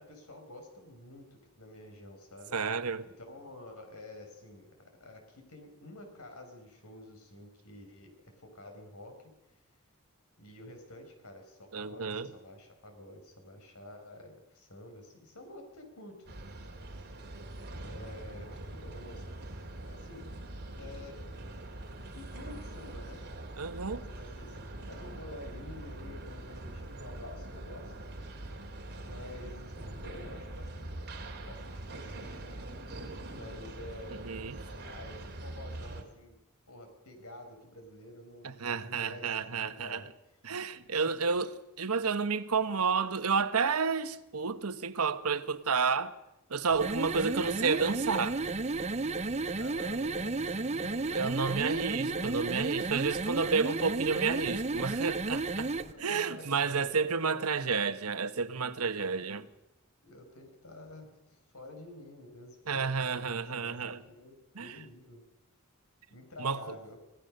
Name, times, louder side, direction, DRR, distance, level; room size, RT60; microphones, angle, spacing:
voice 1, 0.0-2.5 3.0-9.3 10.4-16.7 17.8-19.5 19.8-20.2 20.7-21.2 22.1-23.2 23.6-27.9 29.0-31.0 31.4-32.9 33.2-36.4 36.7-40.1 41.0-41.3 49.6-51.2 51.9-52.5 54.1-54.5 55.8-57.6 59.1-59.4 60.0-63.7 64.1-65.2 66.1-67.0, left 1 dB, 80° left, 5.4 m, -50 dB
voice 2, 2.5-3.0 11.7-12.3 23.6-24.0 34.1-34.6 38.4-40.0 40.4-41.5 41.8-46.2 46.5-48.4 51.1-55.7 56.0-59.5 62.7-64.0 64.5-64.8 66.4-66.6, right 5 dB, 80° right, 1.1 m, -31 dB
sound 1, 16.3-36.0, right 1 dB, 50° right, 2.9 m, -43 dB
sound 2, 46.7-55.9, right 3 dB, 30° right, 0.9 m, -33 dB
25.5 x 17.0 x 6.6 m
head